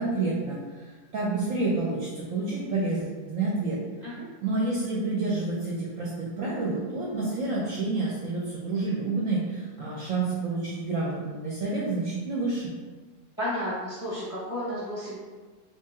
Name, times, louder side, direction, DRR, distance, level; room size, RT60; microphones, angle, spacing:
voice 1, 0.0-3.8 4.4-12.7, right 3 dB, 65° right, -5 dB, 0.8 m, -29 dB
voice 2, 13.4-15.2, equal, 15° left, -8 dB, 0.8 m, -32 dB
3.2 x 2.8 x 3.5 m, 1.4 s
omnidirectional pair, 1.8 m